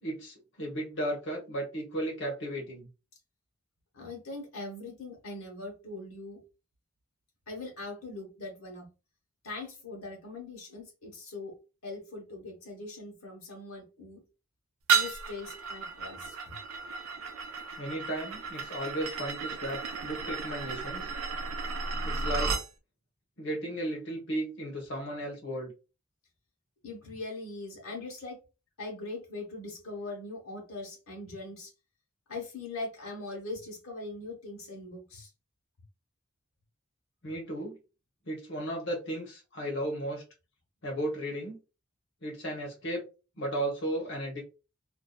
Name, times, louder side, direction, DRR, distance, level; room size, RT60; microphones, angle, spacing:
voice 1, 0.0-2.9 17.8-21.1 22.0-22.6 23.4-25.7 37.2-37.8 38.3-40.2 40.8-41.6 42.2-43.0 43.4-44.4, right 1 dB, 60° left, -1 dB, 0.9 m, -35 dB
voice 2, 3.9-6.4 7.5-8.9 9.4-11.5 11.8-14.2 14.9-16.5 26.8-28.4 28.8-31.7 32.3-35.3, left 2 dB, 85° left, 0 dB, 1.0 m, -41 dB
sound 1, 14.9-22.7, right 5 dB, 80° right, 0.4 m, -33 dB
2.5 x 2.3 x 2.2 m, 0.30 s
head